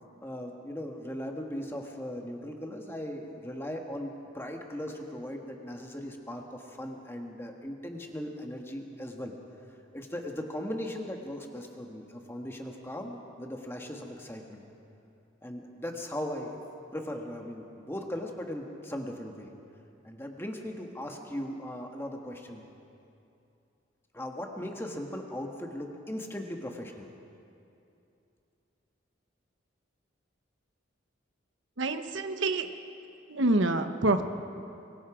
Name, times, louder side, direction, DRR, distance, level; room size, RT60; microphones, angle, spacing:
voice 1, 0.2-9.3 9.9-14.6 15.4-16.6 16.9-19.5 20.0-22.6 24.1-27.1, left 1 dB, 10° left, 2 dB, 1.7 m, -38 dB
voice 2, 31.8-32.7 33.3-34.2, right 2 dB, 80° right, 8 dB, 1.1 m, -26 dB
25.0 x 22.5 x 5.0 m, 2.7 s
head